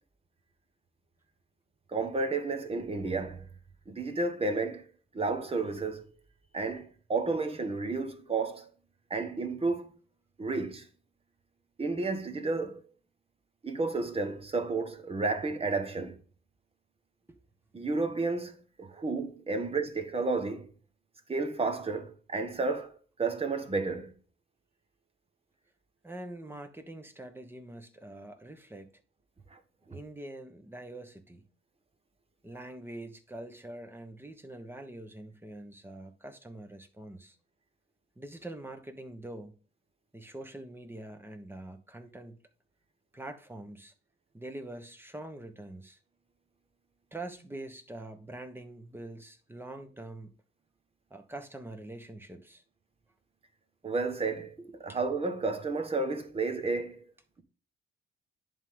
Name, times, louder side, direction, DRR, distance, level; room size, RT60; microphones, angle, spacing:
voice 1, 1.9-3.5 3.9-4.9 5.1-6.1 6.5-8.7 9.1-9.9 10.4-10.8 11.8-12.8 13.6-16.1 17.7-20.7 21.3-22.9 23.2-24.1 29.5-29.6 53.8-54.5 54.8-57.1, right 3 dB, 30° right, 1.3 m, -31 dB
voice 2, 26.0-28.9 29.9-31.4 32.4-37.4 38.2-39.6 40.1-42.4 43.1-43.9 44.3-46.0 47.1-50.3 51.1-52.6 54.6-55.0, right 1 dB, 10° right, 1.2 m, -44 dB
10.5 x 3.7 x 3.7 m
cardioid pair, 90°, 20 cm